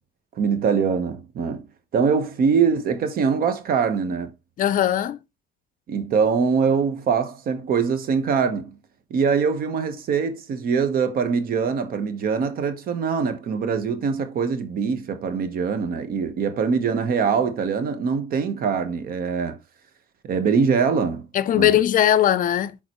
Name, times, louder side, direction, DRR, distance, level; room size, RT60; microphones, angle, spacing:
voice 1, 0.4-1.7 1.9-4.3 5.9-8.8 9.1-19.6 20.2-21.3 21.5-21.8, right 6 dB, 60° right, 1.2 m, -23 dB
voice 2, 4.6-5.2 21.3-22.8, left 11 dB, 55° left, 0.5 m, -19 dB
10.5 x 3.9 x 3.1 m
cardioid pair, 110°, 17 cm